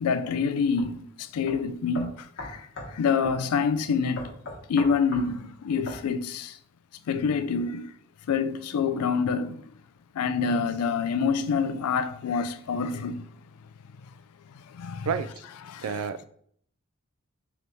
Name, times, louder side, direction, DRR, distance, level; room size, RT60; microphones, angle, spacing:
voice 1, 0.0-4.3 4.7-6.6 7.1-7.9 8.3-9.6 10.1-13.2 14.7-15.1 15.7-15.8, left 5 dB, 85° left, 0.4 m, -27 dB
sound 1, 0.8-0.9 1.5-1.6 1.9-2.9 3.2-3.4 4.2-5.3 5.9-6.0, left 2 dB, 55° left, 1.0 m, -37 dB
voice 2, 15.8-16.3, right 6 dB, 70° right, 0.3 m, -29 dB
3.4 x 2.9 x 4.0 m
head